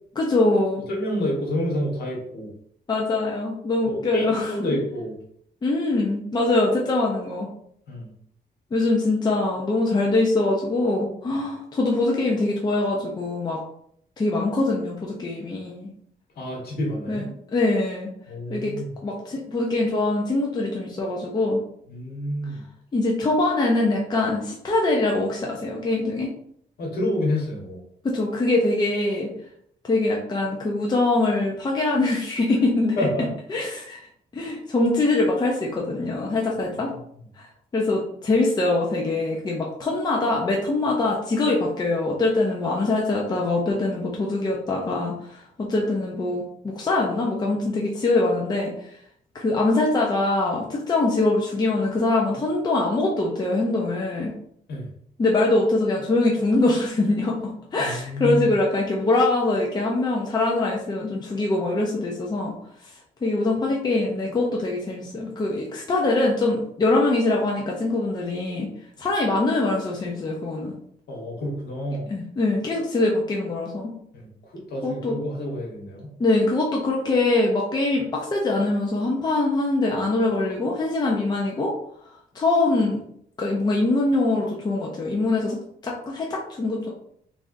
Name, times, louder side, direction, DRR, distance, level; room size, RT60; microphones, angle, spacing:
voice 1, 0.2-0.8 2.9-4.5 5.6-7.5 8.7-13.6 14.2-15.9 17.1-18.1 18.5-18.7 19.0-21.6 22.9-26.3 28.0-29.3 29.8-33.1 33.5-34.1 34.3-36.9 37.4-37.5 37.7-48.9 49.3-54.3 55.2-62.5 62.8-62.9 63.2-68.7 69.0-70.7 72.1-73.9 74.8-75.2 76.2-81.7 82.3-83.0 83.4-85.6 85.8-86.9, left 2 dB, 25° left, -1 dB, 0.6 m, -23 dB
voice 2, 0.9-2.5 4.1-5.1 7.9-8.1 16.3-17.3 18.3-18.8 21.9-22.6 26.8-27.8 33.0-33.3 54.7-54.9 57.8-58.5 71.1-72.1 74.1-74.3 74.7-76.1, left 1 dB, 75° left, -3 dB, 1.5 m, -28 dB
3.6 x 3.3 x 2.6 m, 0.68 s
cardioid pair, 145°, 16 cm